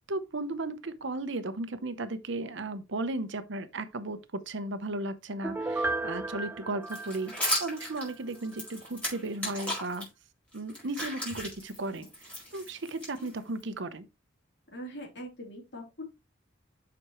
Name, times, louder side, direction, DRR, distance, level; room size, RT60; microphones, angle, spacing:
voice 1, 0.1-7.3 7.6-10.1 10.5-12.1 12.5-14.1, right 2 dB, 65° right, 0.8 m, -35 dB
Piano, 5.4-8.1 8.5-8.6, right 2 dB, 10° right, 0.4 m, -34 dB
sound 1, 6.9-10.0 10.5-13.6, equal, 5° left, 4.8 m, -36 dB
voice 2, 14.7-16.1, equal, 60° left, 3.4 m, -42 dB
7.9 x 6.0 x 3.1 m
head